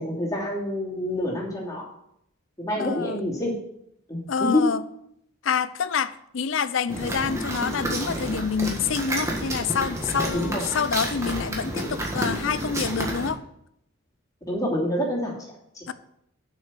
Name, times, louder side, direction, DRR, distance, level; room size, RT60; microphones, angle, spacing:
voice 1, 0.0-1.9 2.6-3.5 4.1-4.7 10.3-10.6 14.5-15.3 15.7-15.9, left 1 dB, 15° left, 2.8 m, -27 dB
voice 2, 2.8-3.2 4.3-4.8 5.4-13.4 15.9-16.0, left 6 dB, 65° left, 0.5 m, -27 dB
sound 1, 6.9-13.3, right 1 dB, 15° right, 1.5 m, -30 dB
7.4 x 6.4 x 7.4 m
head